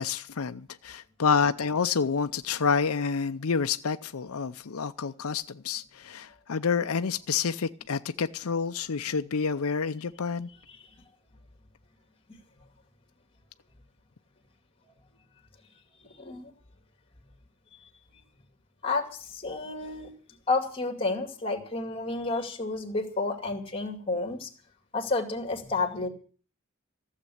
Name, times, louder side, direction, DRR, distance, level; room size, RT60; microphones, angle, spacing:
voice 1, 0.0-10.5, left 5 dB, 85° left, 0.6 m, -28 dB
voice 2, 16.1-16.5 17.8-17.9 18.8-20.1 20.5-24.5 24.9-26.1, left 3 dB, 25° left, 2.5 m, -30 dB
15.0 x 7.5 x 10.0 m
head